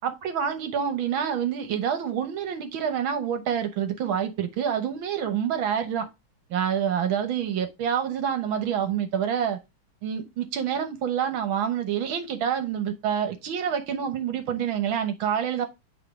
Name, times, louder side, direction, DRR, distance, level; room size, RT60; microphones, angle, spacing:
voice 1, 0.0-6.1 6.5-9.6 10.0-15.7, right 8 dB, 80° right, 1.9 m, -27 dB
8.5 x 3.7 x 3.6 m
omnidirectional pair, 2.2 m